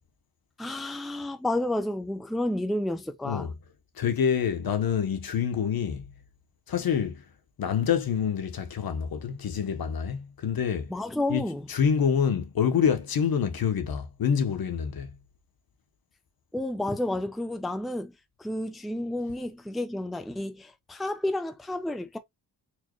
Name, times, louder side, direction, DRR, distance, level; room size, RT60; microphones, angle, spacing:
voice 1, 0.6-3.5 10.9-11.6 16.5-18.1 18.4-22.2, left 1 dB, ahead, 0.5 m, -31 dB
voice 2, 3.9-6.1 6.7-7.2 7.6-10.9 11.3-15.2, left 7 dB, 60° left, 0.9 m, -27 dB
4.4 x 2.2 x 3.0 m
wide cardioid pair, 110°, 40 cm